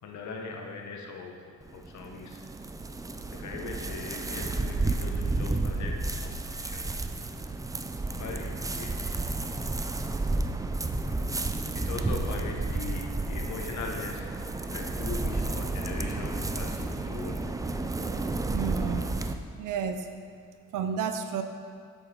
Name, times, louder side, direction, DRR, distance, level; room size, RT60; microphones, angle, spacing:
voice 1, 0.0-1.4 1.7-2.4 3.3-7.0 8.2-9.0 11.7-14.3 14.7-17.5, left 4 dB, 65° left, 1 dB, 1.2 m, -40 dB
sound 1, 1.6-19.3, right 2 dB, 10° right, 0.4 m, -31 dB
voice 2, 18.5-19.2 19.6-20.1 20.7-21.4, right 7 dB, 85° right, 7 dB, 0.5 m, -31 dB
8.0 x 7.3 x 3.8 m, 2.1 s
cardioid pair, 85°, 31 cm